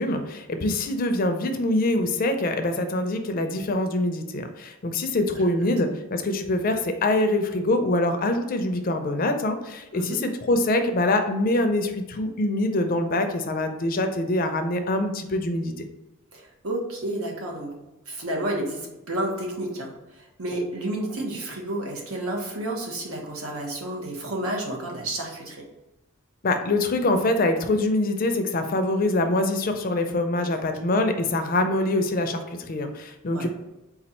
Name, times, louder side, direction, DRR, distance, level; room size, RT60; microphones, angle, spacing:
voice 1, 0.0-15.7 26.4-33.5, left 2 dB, 40° left, 6 dB, 0.4 m, -24 dB
voice 2, 5.3-5.7 9.9-10.2 16.3-17.8 18.1-25.7 30.3-30.5 33.3-33.5, right 1 dB, 90° right, -1 dB, 1.0 m, -31 dB
4.2 x 2.4 x 4.1 m, 1.0 s
head